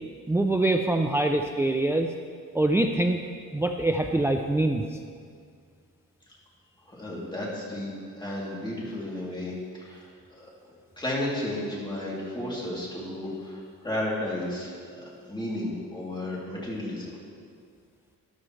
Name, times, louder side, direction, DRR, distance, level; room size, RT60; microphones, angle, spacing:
voice 1, 0.3-2.1 2.5-3.2 3.5-5.0, right 2 dB, 10° right, 4 dB, 0.4 m, -24 dB
voice 2, 6.9-7.9 8.2-10.1 10.4-10.5 11.0-17.2, left 1 dB, 15° left, -6 dB, 3.0 m, -33 dB
13.5 x 11.5 x 3.2 m, 2.1 s
cardioid pair, 125°, 35 cm